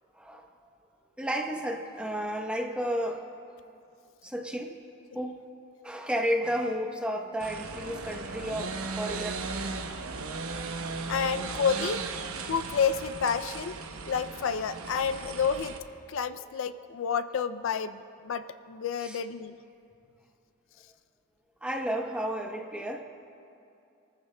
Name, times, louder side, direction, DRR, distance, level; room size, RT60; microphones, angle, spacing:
voice 1, 0.1-0.5 1.2-3.3 4.2-4.8 5.1-5.4 5.8-9.5 19.0-19.2 21.6-23.0, equal, 5° right, 1 dB, 0.9 m, -32 dB
sound 1, 7.4-15.8, right 4 dB, 80° right, 0.9 m, -37 dB
voice 2, 11.1-12.0 12.5-13.7 14.1-15.7 16.1-19.6, left 6 dB, 65° left, 12 dB, 0.4 m, -29 dB
28.0 x 14.5 x 2.2 m, 2.6 s
head